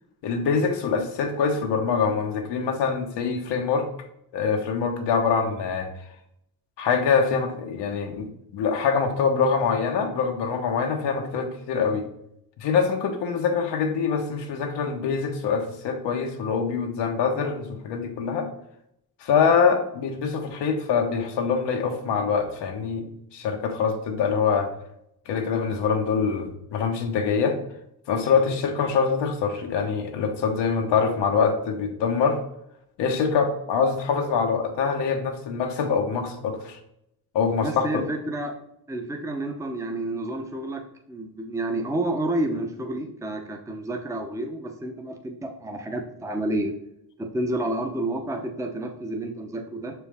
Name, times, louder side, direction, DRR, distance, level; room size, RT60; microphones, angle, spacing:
voice 1, 0.2-3.9 4.3-5.9 6.8-12.0 12.6-18.5 19.2-23.1 23.3-24.7 25.3-27.6 28.1-32.4 33.0-36.8 37.3-38.0, left 5 dB, 85° left, 3 dB, 1.1 m, -24 dB
voice 2, 37.6-38.5 38.9-46.7 47.2-49.9, right 1 dB, 5° right, 3 dB, 0.7 m, -30 dB
6.3 x 4.6 x 3.5 m, 0.77 s
cardioid pair, 115°, 41 cm